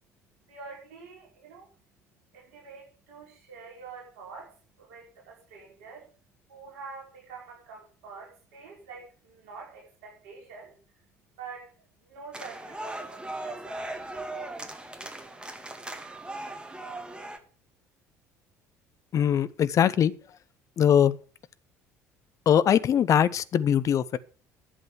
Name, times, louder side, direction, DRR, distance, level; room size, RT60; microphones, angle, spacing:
voice 1, 0.4-6.1 6.5-14.0, right 4 dB, 65° right, 5.2 m, -46 dB
sound 1, 12.3-17.4, right 2 dB, 10° right, 2.0 m, -38 dB
voice 2, 19.1-20.1 20.8-21.2 22.5-24.2, left 9 dB, 40° left, 0.8 m, -21 dB
11.5 x 7.9 x 6.9 m
figure-of-eight pair, 55°, 8 cm